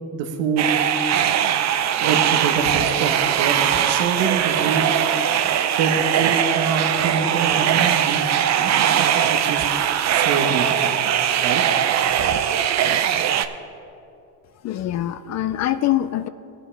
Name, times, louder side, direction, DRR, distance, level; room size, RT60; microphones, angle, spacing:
voice 1, 0.1-0.7 2.0-4.9 5.8-8.3 8.6-9.6 10.1-10.9 11.4-11.6, right 5 dB, 70° right, 3 dB, 1.2 m, -26 dB
sound 1, 0.6-13.5, right 9 dB, 40° right, 0.6 m, -20 dB
voice 2, 14.6-16.3, left 13 dB, 40° left, 13 dB, 0.4 m, -23 dB
18.5 x 8.0 x 3.3 m, 2.8 s
supercardioid pair, 105°, 45 cm